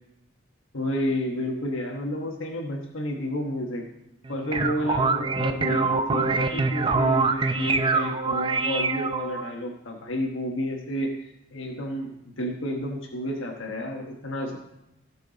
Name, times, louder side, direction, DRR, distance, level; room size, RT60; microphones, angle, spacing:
voice 1, 0.7-3.8 4.3-11.1 11.5-14.6, equal, 80° left, -1 dB, 1.3 m, -30 dB
sound 1, 4.2-9.5, right 3 dB, 25° right, 0.5 m, -24 dB
17.0 x 5.7 x 4.0 m, 0.88 s
head